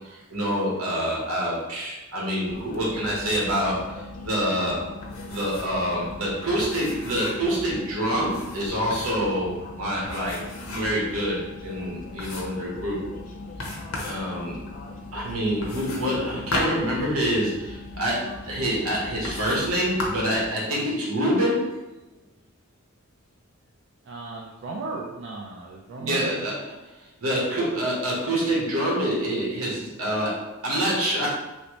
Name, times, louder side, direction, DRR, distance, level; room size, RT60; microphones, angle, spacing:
voice 1, 0.0-4.8 5.3-10.4 10.6-13.0 13.9-14.6 14.8-21.9 26.0-26.6 27.0-31.3, equal, 80° right, -5 dB, 1.2 m, -26 dB
sound 1, 2.5-20.5, left 2 dB, 40° left, 0.4 m, -40 dB
sound 2, 5.0-5.8 6.1-6.2 6.6-7.5 8.2-9.3 10.0-11.1 11.5-11.6 12.2-12.7 13.6-14.2 15.6-17.6 18.4-18.5 19.2-19.7 20.0-20.4, left 2 dB, 90° left, 0.7 m, -35 dB
voice 2, 24.0-26.5, right 3 dB, 60° right, -3 dB, 0.4 m, -35 dB
3.1 x 2.7 x 3.0 m, 1.1 s
head